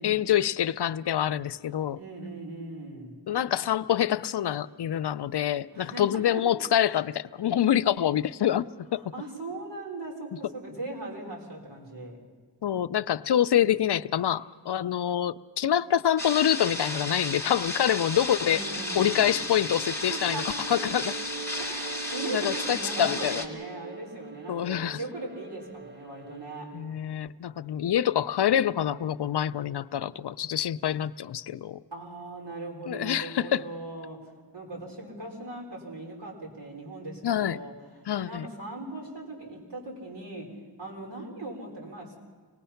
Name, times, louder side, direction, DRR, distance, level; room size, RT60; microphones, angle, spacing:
voice 1, 0.0-2.0 3.3-9.0 12.6-18.6 18.9-21.2 22.3-23.4 24.5-25.0 26.7-31.8 32.9-33.6 37.2-37.6 38.1-38.5, left 10 dB, 70° left, 0.5 m, -26 dB
voice 2, 1.9-3.2 5.7-6.4 9.0-12.2 18.4-19.3 20.1-20.7 21.6-26.7 31.9-37.7 38.2-40.5 40.8-42.2, right 2 dB, 70° right, 4.2 m, -39 dB
sound 1, 16.2-23.5, left 1 dB, 5° left, 2.1 m, -33 dB
Bowed string instrument, 18.5-26.9, right 4 dB, 25° right, 0.7 m, -43 dB
25.0 x 19.5 x 5.7 m
wide cardioid pair, 85°, 42 cm